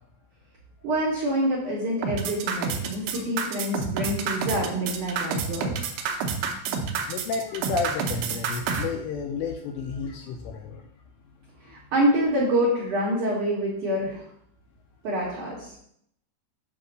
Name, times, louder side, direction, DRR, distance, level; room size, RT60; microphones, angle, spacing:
voice 1, 0.8-5.7 11.7-14.3 15.0-15.6, equal, 65° right, -7 dB, 2.0 m, -26 dB
sound 1, 2.0-8.8, right 6 dB, 85° right, 2.2 m, -28 dB
voice 2, 7.1-10.9 11.7-11.8, left 5 dB, 85° left, 3 dB, 2.6 m, -32 dB
8.3 x 2.9 x 6.3 m, 0.70 s
omnidirectional pair, 5.5 m